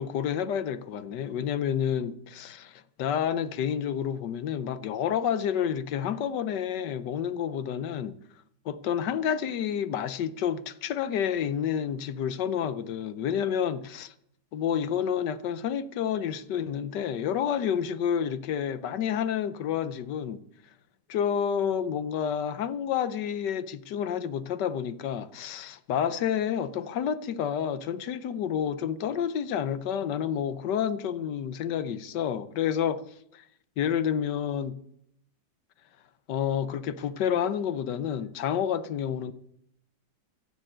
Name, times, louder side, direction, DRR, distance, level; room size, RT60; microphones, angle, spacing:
voice 1, 0.0-8.1 8.6-14.1 14.5-20.4 21.1-33.0 33.3-33.4 33.8-34.8 36.3-39.3, left 8 dB, 75° left, 1.4 m, -29 dB
15.0 x 7.0 x 7.7 m
omnidirectional pair, 1.9 m